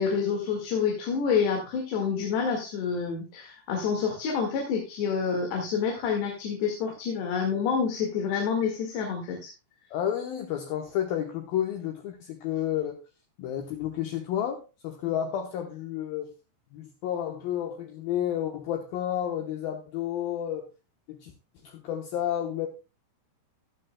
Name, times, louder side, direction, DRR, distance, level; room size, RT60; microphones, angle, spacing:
voice 1, 0.0-9.5, left 6 dB, 90° left, 4.1 m, -28 dB
voice 2, 9.9-13.0 13.4-16.3 16.7-20.7 21.1-21.3 21.6-22.7, left 10 dB, 70° left, 2.7 m, -31 dB
14.5 x 12.0 x 2.2 m
omnidirectional pair, 4.7 m